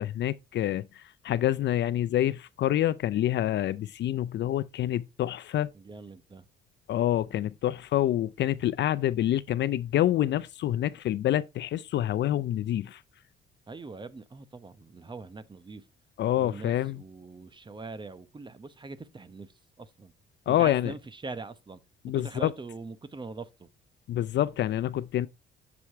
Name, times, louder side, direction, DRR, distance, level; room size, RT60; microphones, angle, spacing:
voice 1, 0.0-5.7 6.9-13.0 16.2-17.0 20.5-20.9 22.0-22.5 24.1-25.3, left 12 dB, 65° left, 0.4 m, -27 dB
voice 2, 5.7-6.5 13.7-15.9 16.4-20.1 20.5-21.8 22.1-23.7, right 3 dB, 25° right, 0.8 m, -42 dB
7.1 x 4.9 x 4.4 m
cardioid pair, 90°, 20 cm